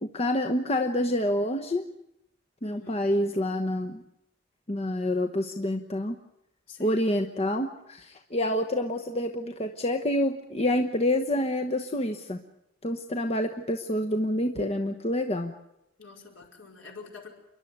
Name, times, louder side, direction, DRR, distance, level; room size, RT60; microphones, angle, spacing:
voice 1, 0.0-1.9 2.6-4.0 4.7-6.2 6.8-12.4 12.8-15.5, left 1 dB, 30° left, 4 dB, 1.0 m, -27 dB
voice 2, 2.6-3.1 6.7-7.1 16.0-17.3, left 4 dB, 70° left, 0 dB, 5.0 m, -46 dB
29.0 x 11.5 x 9.4 m, 0.83 s
head